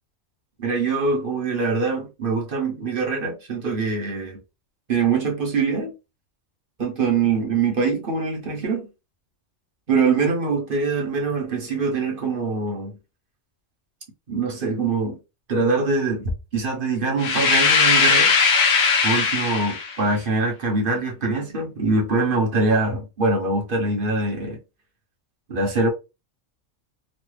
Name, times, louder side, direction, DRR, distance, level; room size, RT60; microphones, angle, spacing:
voice 1, 0.6-4.4 4.9-5.9 6.8-8.9 9.9-12.9 14.3-15.2 15.5-18.3 19.0-24.6 25.5-25.9, right 4 dB, 50° right, 0.9 m, -23 dB
sound 1, 17.2-20.0, left 5 dB, 80° left, 1.2 m, -19 dB
3.1 x 2.2 x 3.1 m
omnidirectional pair, 1.4 m